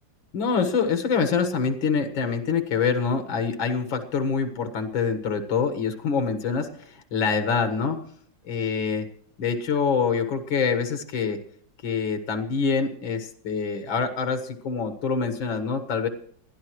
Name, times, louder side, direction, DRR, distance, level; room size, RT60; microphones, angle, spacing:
voice 1, 0.3-8.0 8.4-9.1 9.4-11.4 11.8-16.1, left 5 dB, 80° left, 6 dB, 2.3 m, -25 dB
29.5 x 11.0 x 3.1 m, 0.62 s
omnidirectional pair, 2.1 m